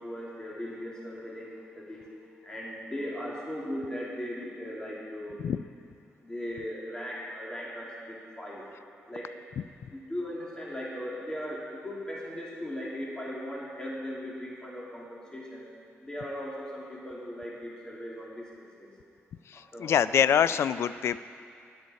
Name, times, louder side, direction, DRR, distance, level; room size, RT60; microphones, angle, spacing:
voice 1, 0.0-5.4 6.2-8.6 9.1-9.3 9.9-15.7 16.0-18.9 19.5-20.2, equal, 15° left, -5 dB, 2.5 m, -38 dB
voice 2, 19.8-21.2, left 8 dB, 70° left, 15 dB, 0.3 m, -24 dB
20.0 x 7.9 x 4.2 m, 2.4 s
cardioid pair, 90°, 5 cm